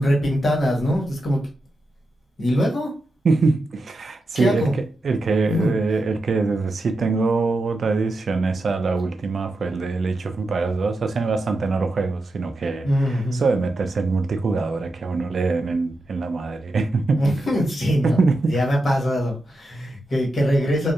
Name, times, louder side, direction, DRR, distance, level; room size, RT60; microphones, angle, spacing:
voice 1, 0.0-1.4 2.4-2.9 4.3-4.7 5.5-5.7 12.8-13.4 17.1-20.9, equal, 55° left, 1.2 m, -22 dB
voice 2, 3.2-4.7 5.0-17.2 18.0-18.5, right 4 dB, 65° right, 0.3 m, -23 dB
2.6 x 2.3 x 2.3 m
cardioid pair, 60°, 0 cm